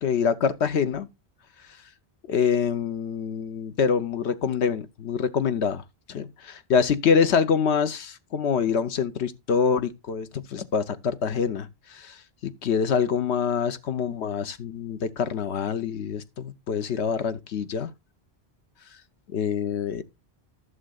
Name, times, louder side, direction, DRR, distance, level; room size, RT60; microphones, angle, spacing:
voice 1, 0.0-1.1 2.3-5.8 6.1-17.9 19.3-20.0, left 6 dB, 85° left, 1.1 m, -25 dB
14.5 x 6.5 x 2.4 m
omnidirectional pair, 1.1 m